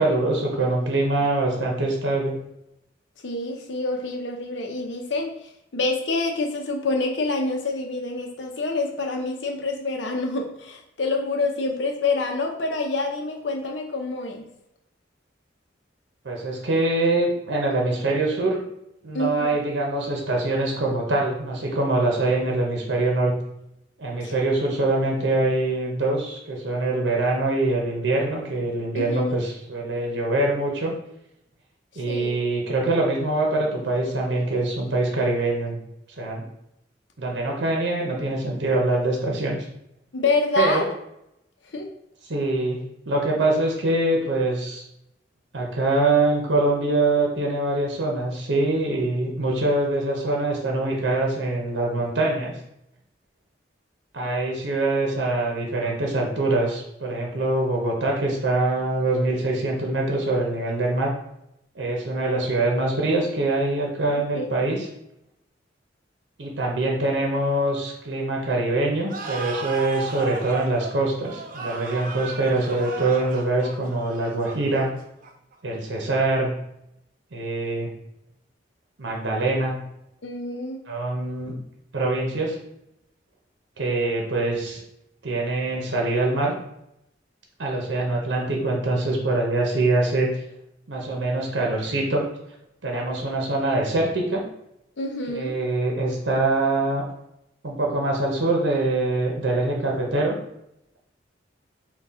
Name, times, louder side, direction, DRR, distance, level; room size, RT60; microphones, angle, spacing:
voice 1, 0.0-2.4 16.2-18.6 19.0-23.3 24.0-30.9 32.0-35.8 36.2-36.4 37.2-39.7 40.6-40.8 42.3-44.8 45.5-52.5 54.1-61.1 61.7-64.8 66.4-74.9 75.6-76.5 77.3-77.9 79.0-79.8 80.9-81.5 81.9-82.6 83.8-84.8 85.2-86.5 87.6-90.3 90.9-92.3 92.8-94.4 95.3-97.0 97.6-100.4, right 2 dB, 75° right, -1 dB, 0.8 m, -24 dB
voice 2, 3.2-14.5 19.1-19.6 24.2-24.3 28.9-29.4 32.1-32.3 40.1-40.9 41.7-41.9 64.2-64.5 80.2-80.8 95.0-95.6, left 3 dB, 80° left, 2 dB, 0.7 m, -27 dB
sound 1, 69.1-75.5, right 4 dB, 50° right, 0.5 m, -35 dB
4.2 x 2.4 x 3.6 m, 0.81 s
head